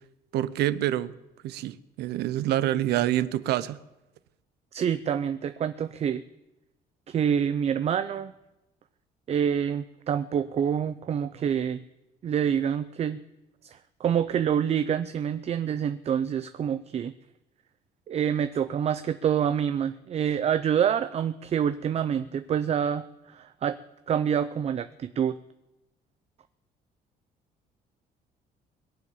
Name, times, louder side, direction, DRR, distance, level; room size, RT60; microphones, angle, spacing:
voice 1, 0.3-1.1 1.4-3.8, right 13 dB, 80° right, 0.7 m, -27 dB
voice 2, 4.7-6.2 7.1-8.3 9.3-11.8 12.2-13.2 13.6-17.1 18.1-23.8 24.1-25.4, right 8 dB, 40° right, 0.5 m, -27 dB
21.5 x 7.3 x 7.1 m
cardioid pair, 110°, 17 cm